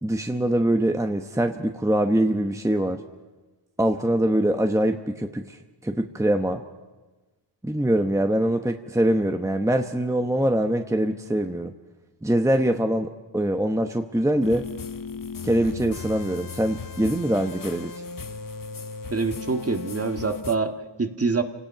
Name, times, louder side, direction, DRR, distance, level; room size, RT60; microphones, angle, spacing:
voice 1, 0.0-3.0 3.8-6.6 7.6-11.7 12.2-14.7 15.4-18.0, right 1 dB, 5° right, 5 dB, 1.0 m, -23 dB
sound 1, 14.4-20.6, left 5 dB, 45° left, 0.9 m, -36 dB
voice 2, 19.1-21.4, right 4 dB, 30° right, 6 dB, 1.7 m, -26 dB
28.0 x 18.5 x 5.8 m, 1.2 s
cardioid pair, 75°, 45 cm